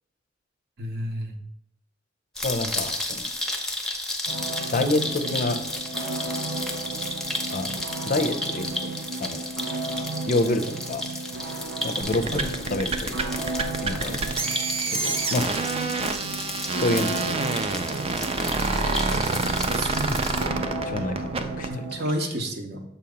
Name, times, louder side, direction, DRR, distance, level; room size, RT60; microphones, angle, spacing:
voice 1, 0.8-1.4 4.3-4.4 12.3-12.5 19.7-20.4 21.7-22.8, right 1 dB, 55° right, 4 dB, 0.8 m, -31 dB
voice 2, 2.4-3.3 4.7-5.6 7.5-7.8 8.1-8.9 9.2-9.5 10.3-11.0 11.8-13.5 13.8-14.2 14.6-15.6 16.7-17.8 20.5-21.9, left 2 dB, 45° left, 8 dB, 0.5 m, -28 dB
sound 1, 2.4-20.5, left 1 dB, 5° left, 0.7 m, -33 dB
sound 2, 4.3-22.1, right 3 dB, 90° right, 0.7 m, -34 dB
sound 3, 12.0-21.7, right 4 dB, 30° right, 0.4 m, -27 dB
6.9 x 2.9 x 5.1 m, 0.75 s
head